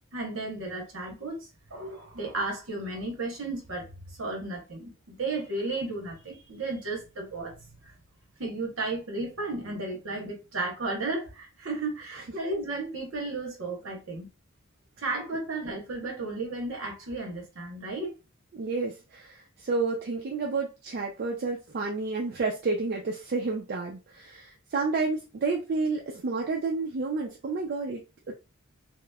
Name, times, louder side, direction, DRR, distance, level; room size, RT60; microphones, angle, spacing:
voice 1, 0.1-7.6 7.8-7.9 8.4-14.3 15.0-18.1, right 2 dB, 65° right, 1.0 m, -34 dB
voice 2, 18.5-28.3, right 3 dB, 45° right, 0.4 m, -30 dB
2.9 x 2.0 x 2.2 m
head